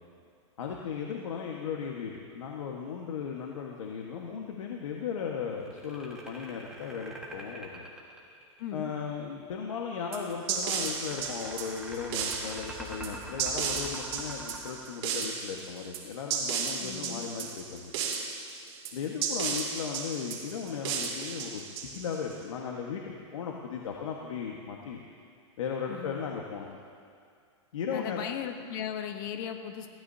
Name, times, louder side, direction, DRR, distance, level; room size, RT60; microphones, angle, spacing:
voice 1, 0.6-7.8 8.7-17.9 18.9-25.0 25.6-26.7 27.7-28.2, left 6 dB, 80° left, 0 dB, 1.5 m, -36 dB
sound 1, 5.6-8.8 10.2-15.7, right 2 dB, 5° right, 1.6 m, -44 dB
voice 2, 8.6-8.9 16.7-17.2 25.9-26.2 27.9-29.9, left 9 dB, 40° left, 6 dB, 1.1 m, -37 dB
sound 2, 10.1-22.3, right 6 dB, 50° right, 2.8 m, -34 dB
22.5 x 16.0 x 2.8 m, 2.3 s
supercardioid pair, 165°, 16 cm